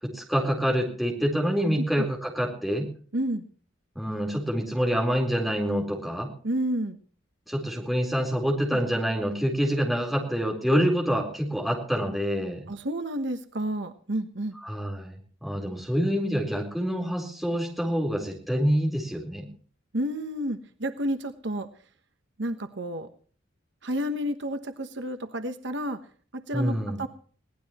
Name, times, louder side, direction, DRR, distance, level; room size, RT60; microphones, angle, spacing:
voice 1, 0.0-2.9 4.0-6.3 7.5-12.7 14.6-19.5 26.5-27.0, equal, ahead, 1 dB, 4.0 m, -26 dB
voice 2, 3.1-3.5 6.4-7.0 8.7-8.8 12.7-14.6 19.9-21.7 22.4-23.1 23.8-26.0 26.3-27.1, right 1 dB, 60° right, 8 dB, 1.2 m, -30 dB
22.0 x 18.0 x 3.0 m, 0.44 s
head